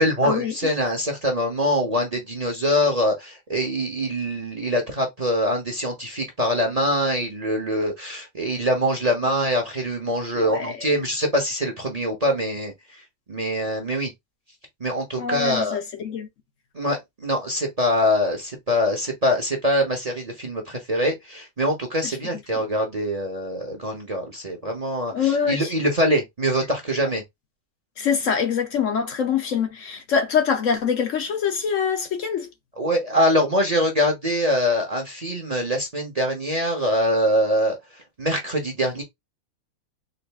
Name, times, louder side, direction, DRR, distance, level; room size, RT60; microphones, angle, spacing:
voice 1, 0.0-12.7 13.3-14.1 14.8-15.8 16.7-27.2 32.8-37.8 38.2-39.0, equal, 30° right, 0.8 m, -24 dB
voice 2, 10.3-11.0 15.2-16.3 22.0-22.2 22.5-22.6 25.1-25.7 28.0-32.5, left 7 dB, 60° left, 1.1 m, -24 dB
4.0 x 2.5 x 3.4 m
omnidirectional pair, 1.5 m